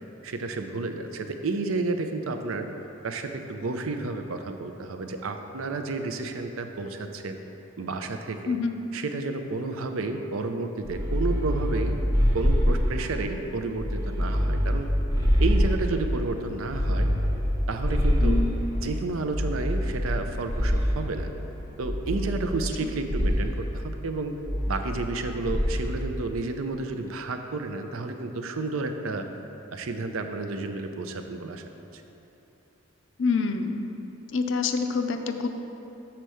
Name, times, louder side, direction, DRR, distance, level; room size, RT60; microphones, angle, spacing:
voice 1, 0.2-2.7 3.0-7.4 7.8-8.6 8.9-12.0 12.3-14.9 15.4-17.1 17.7-18.4 18.8-21.3 21.8-24.4 24.7-29.3 29.7-31.6, right 3 dB, 75° right, 6 dB, 0.5 m, -31 dB
sound 1, 10.8-13.3 13.8-16.2 16.7-18.8 19.3-21.2 21.8-22.8 23.1-23.6 24.5-25.2 25.5-25.9, equal, 15° right, 0.9 m, -25 dB
Musical instrument, 15.3-22.1, left 2 dB, 20° left, 0.7 m, -47 dB
voice 2, 18.2-18.5 22.8-22.9 33.2-33.8 34.3-35.5, left 4 dB, 60° left, 7 dB, 0.5 m, -26 dB
6.8 x 4.4 x 6.3 m, 3.0 s
head